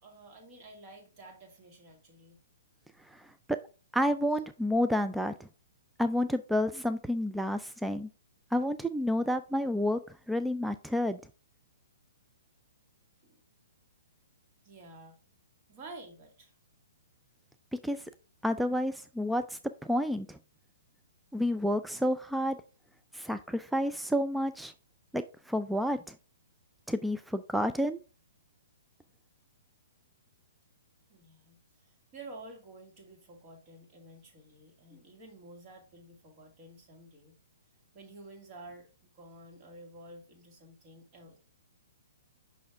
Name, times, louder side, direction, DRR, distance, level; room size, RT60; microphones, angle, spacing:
voice 1, 0.0-2.4 13.2-13.4 14.6-15.4 15.7-16.5 31.1-37.4 37.9-38.9 39.1-41.4, right 2 dB, 30° right, 2 dB, 2.2 m, -51 dB
voice 2, 3.1-3.6 3.9-5.5 6.0-8.1 8.5-10.0 10.3-11.2 17.8-18.0 18.4-20.4 21.3-22.6 23.1-24.7 25.1-26.2 26.9-28.0, equal, ahead, 9 dB, 0.3 m, -30 dB
6.1 x 5.7 x 3.5 m, 0.35 s
figure-of-eight pair, 120°, 0 cm